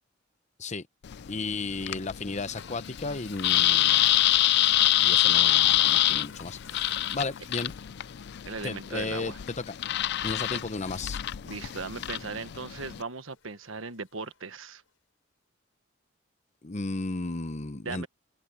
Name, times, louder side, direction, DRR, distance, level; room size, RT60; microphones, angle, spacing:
sound 1, 1.0-13.0, left 13 dB, 55° left, 0.4 m, -26 dB
voice 1, 1.3-4.2 5.0-7.7 8.6-9.7 10.2-11.2 16.6-18.1, left 3 dB, 35° left, 0.9 m, -34 dB
Toilet flush, 1.8-14.6, left 7 dB, 85° left, 4.8 m, -53 dB
voice 2, 8.4-9.4 10.2-10.7 11.4-14.8 17.8-18.1, right 4 dB, 85° right, 1.4 m, -38 dB
head